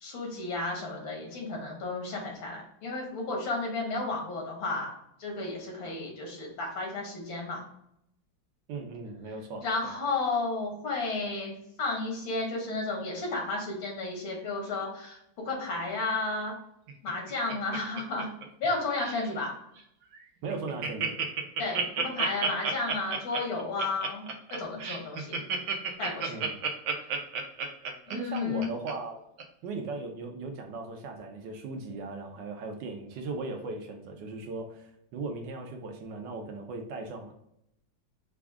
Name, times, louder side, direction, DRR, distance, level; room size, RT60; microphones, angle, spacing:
voice 1, 0.0-4.9 5.2-7.6 9.6-11.5 11.8-15.2 15.4-16.5 17.0-18.3 18.6-19.5 21.6-25.5 26.0-26.4 28.1-28.7, left 3 dB, 80° left, 0 dB, 2.1 m, -32 dB
voice 2, 8.7-9.9 20.4-21.2 26.3-26.5 28.1-29.2 29.6-37.3, right 3 dB, 70° right, 3 dB, 1.4 m, -38 dB
Laughter, 16.9-18.6 18.9-19.3 19.8-19.9 20.1-20.2 20.5-28.9 29.4-29.5, right 5 dB, 90° right, 1.5 m, -31 dB
5.1 x 2.4 x 3.5 m, 0.75 s
omnidirectional pair, 2.1 m